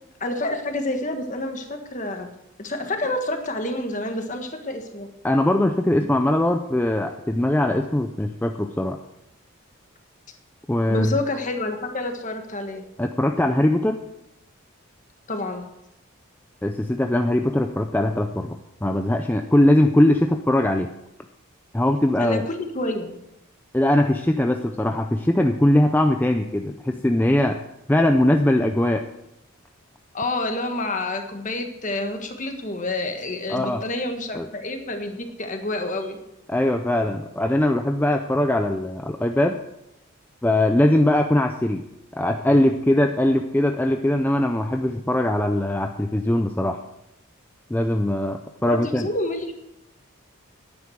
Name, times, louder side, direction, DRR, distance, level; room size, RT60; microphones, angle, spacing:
voice 1, 0.2-2.3 2.6-5.1 10.9-12.8 15.3-15.7 22.2-23.1 30.1-36.2 48.6-49.5, left 2 dB, 35° left, 5 dB, 1.5 m, -28 dB
voice 2, 5.2-9.0 10.7-11.1 13.0-14.0 16.6-20.9 21.7-22.4 23.7-27.6 27.9-29.0 33.5-33.8 34.3-34.5 36.5-39.6 40.4-41.8 42.1-46.8 47.7-49.1, left 1 dB, 10° left, 5 dB, 0.4 m, -21 dB
10.5 x 9.7 x 6.3 m, 0.86 s
head